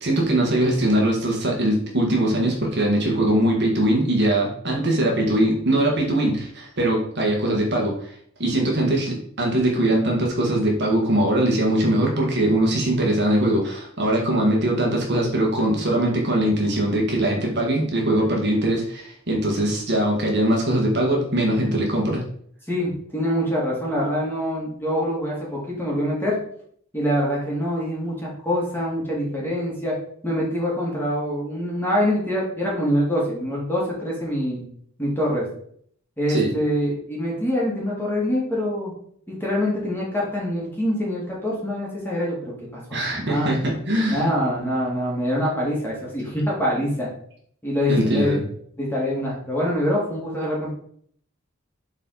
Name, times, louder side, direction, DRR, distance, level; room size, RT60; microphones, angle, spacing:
voice 1, 0.0-8.1 8.4-22.2 36.3-36.5 42.9-44.3 47.9-48.4, right 1 dB, 55° right, -1 dB, 1.7 m, -21 dB
voice 2, 22.7-26.4 26.9-30.0 30.2-34.6 35.0-35.5 36.2-38.9 39.3-43.5 44.1-47.1 47.6-48.3 48.8-50.7, equal, 10° left, -4 dB, 2.2 m, -25 dB
7.2 x 4.1 x 3.9 m, 0.62 s
head